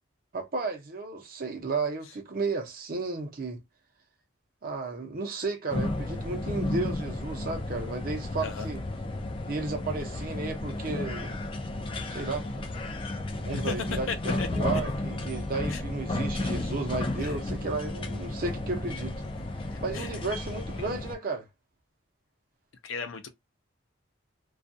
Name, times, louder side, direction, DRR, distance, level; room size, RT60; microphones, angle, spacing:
voice 1, 0.3-3.6 4.6-8.8 9.5-11.4 12.1-12.8 13.4-19.2 19.8-21.5, right 3 dB, 45° right, 0.7 m, -33 dB
sound 1, 5.7-21.2, left 2 dB, 25° left, 0.3 m, -33 dB
voice 2, 14.1-14.6 15.7-15.8 17.2-17.4 19.4-20.1 20.8-20.9 22.8-23.3, left 5 dB, 80° left, 0.6 m, -37 dB
2.4 x 2.2 x 2.6 m
head